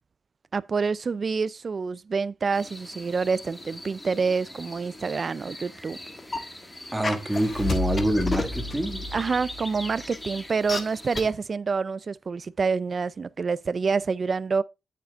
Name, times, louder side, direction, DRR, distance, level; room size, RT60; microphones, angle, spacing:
voice 1, 0.5-6.0 9.1-14.6, right 5 dB, 45° right, 0.4 m, -27 dB
sound 1, 2.5-11.3, left 1 dB, 15° left, 2.0 m, -42 dB
sound 2, 6.2-6.4 7.0-7.4 8.0-8.6 9.1-9.2 10.0-10.2 10.7-10.8 11.2-11.3, left 3 dB, 35° left, 1.5 m, -29 dB
voice 2, 6.9-9.1, right 1 dB, 10° right, 2.1 m, -26 dB
sound 3, 7.2-10.4, left 2 dB, 60° left, 3.0 m, -32 dB
8.7 x 8.4 x 2.5 m
cardioid pair, 85°, 0 cm